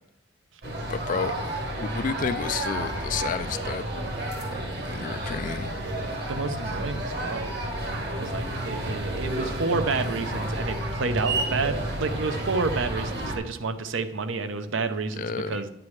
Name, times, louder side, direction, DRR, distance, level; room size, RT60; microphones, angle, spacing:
sound 1, 0.6-13.4, right 1 dB, 50° right, 1.4 m, -31 dB
voice 1, 0.9-1.3 1.8-3.8 4.9-5.7 15.2-15.6, left 6 dB, 40° left, 13 dB, 0.3 m, -30 dB
voice 2, 6.3-7.5 8.2-15.7, right 4 dB, 65° right, 10 dB, 0.6 m, -29 dB
9.6 x 8.8 x 3.2 m, 0.89 s
head